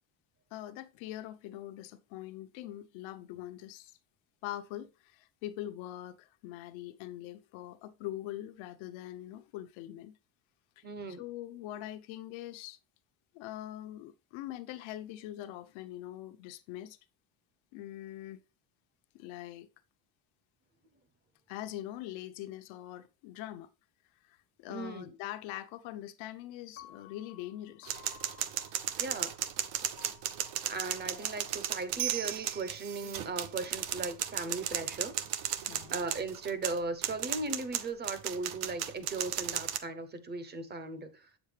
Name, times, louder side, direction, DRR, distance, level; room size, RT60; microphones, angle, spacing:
voice 1, 0.5-4.0 4.4-10.2 10.8-12.8 13.3-17.0 17.7-18.4 19.1-19.7 21.5-23.7 24.2-28.0 35.7-36.0, left 13 dB, 70° left, 0.9 m, -43 dB
voice 2, 10.8-11.2 24.7-25.1 29.0-29.4 30.7-35.1 35.9-41.3, right 3 dB, 20° right, 0.8 m, -37 dB
Piano, 26.8-32.9, left 11 dB, 30° left, 0.5 m, -57 dB
sound 1, 27.9-39.8, right 11 dB, 65° right, 0.8 m, -35 dB
8.2 x 7.1 x 3.3 m
cardioid pair, 170°, 47 cm